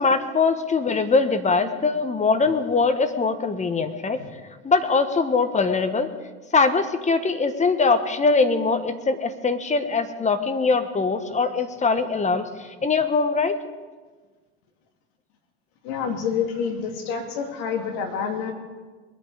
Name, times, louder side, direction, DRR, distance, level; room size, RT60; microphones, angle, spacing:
voice 1, 0.0-4.2 4.6-6.1 6.5-13.5, left 4 dB, 20° left, 9 dB, 1.4 m, -22 dB
voice 2, 15.8-18.5, left 6 dB, 65° left, 3 dB, 2.7 m, -28 dB
21.5 x 9.2 x 5.1 m, 1.3 s
hypercardioid pair, 80°, 33 cm